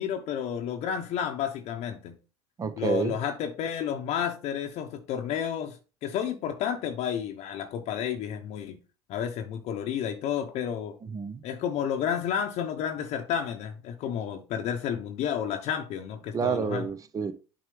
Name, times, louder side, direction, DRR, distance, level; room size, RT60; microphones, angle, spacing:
voice 1, 0.0-2.2 2.8-8.8 9.1-10.9 11.4-16.9, left 8 dB, 55° left, 0.9 m, -31 dB
voice 2, 2.6-3.1 11.1-11.4 16.3-17.3, right 6 dB, 25° right, 0.7 m, -29 dB
7.6 x 4.7 x 3.2 m
supercardioid pair, 95°, 13 cm